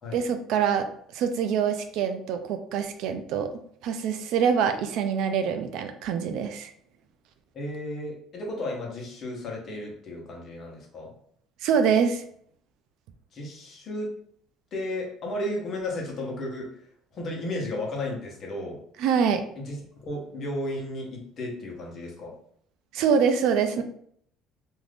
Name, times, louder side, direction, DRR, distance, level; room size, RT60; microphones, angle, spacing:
voice 1, 0.1-0.9 1.1-3.5 3.8-6.7 11.6-12.2 19.0-19.4 22.9-23.8, right 7 dB, 65° right, 8 dB, 0.3 m, -25 dB
voice 2, 7.5-11.1 13.3-14.1 14.7-16.7 17.1-18.8 19.6-22.3, left 1 dB, 35° left, -1 dB, 0.9 m, -34 dB
2.5 x 2.5 x 3.4 m, 0.63 s
cardioid pair, 165°, 0 cm